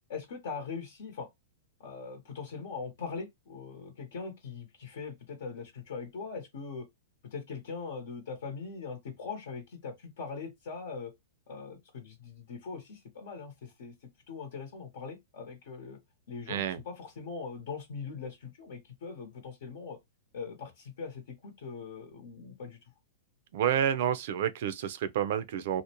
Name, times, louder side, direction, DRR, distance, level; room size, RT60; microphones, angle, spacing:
voice 1, 0.1-1.3 1.8-6.9 7.3-11.1 11.5-13.9 14.3-16.0 16.3-20.0 20.3-22.8, left 5 dB, 70° left, 0.9 m, -41 dB
voice 2, 16.5-16.8 23.5-25.8, right 9 dB, 60° right, 0.4 m, -29 dB
2.5 x 2.1 x 2.8 m
hypercardioid pair, 140°, 0 cm